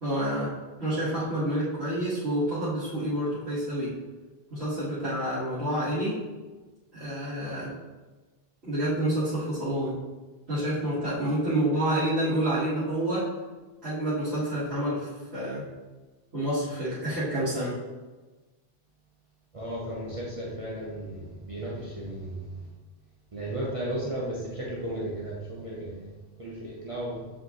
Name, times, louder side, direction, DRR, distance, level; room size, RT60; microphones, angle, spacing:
voice 1, 0.0-0.5 0.8-3.9 4.5-6.2 6.9-7.7 8.6-10.0 10.5-13.3 13.8-15.7 16.3-17.7, right 1 dB, 80° right, -15 dB, 2.6 m, -28 dB
voice 2, 19.5-22.6 23.3-26.1 26.4-27.2, right 1 dB, 35° right, -6 dB, 1.1 m, -34 dB
7.7 x 4.9 x 3.2 m, 1.2 s
omnidirectional pair, 1.0 m